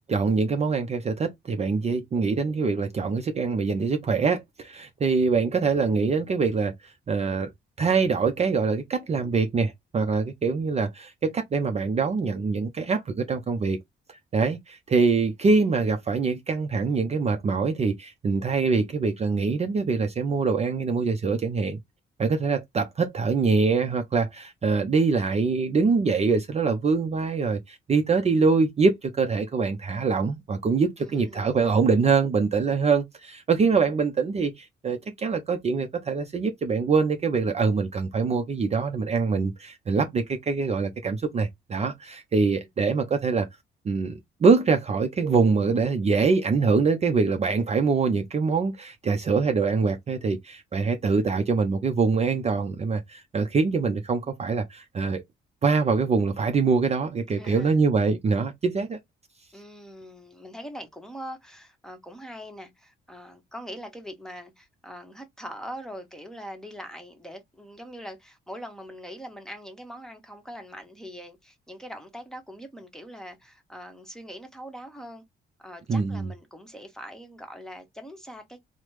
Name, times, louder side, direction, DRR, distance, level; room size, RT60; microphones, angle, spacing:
voice 1, 0.1-7.5 7.8-13.8 14.1-21.8 22.2-43.5 43.8-55.2 55.6-59.0 75.9-76.3, right 4 dB, 35° right, 0.5 m, -24 dB
voice 2, 31.0-31.6 42.5-42.7 57.4-57.8 59.5-75.2 75.6-78.6, equal, 5° left, 0.9 m, -42 dB
3.2 x 2.0 x 3.1 m
cardioid pair, 90°, 20 cm